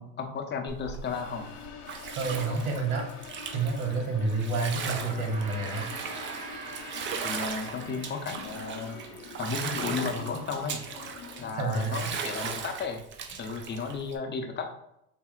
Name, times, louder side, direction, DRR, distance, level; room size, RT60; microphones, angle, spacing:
voice 1, 0.0-1.4 7.2-9.0 9.4-10.8 11.4-13.0 13.4-14.7, left 5 dB, 25° left, 4 dB, 0.6 m, -34 dB
Bathtub (filling or washing), 0.7-14.2, right 6 dB, 30° right, 0.4 m, -38 dB
sound 1, 1.0-11.5, left 7 dB, 85° left, 0.8 m, -46 dB
voice 2, 2.1-3.0 3.5-5.9 11.6-12.1, right 3 dB, 75° right, 2 dB, 1.1 m, -29 dB
Gong, 5.0-9.6, right 3 dB, 45° right, 0.9 m, -44 dB
4.1 x 2.0 x 3.7 m, 0.80 s
hypercardioid pair, 85°, 45 cm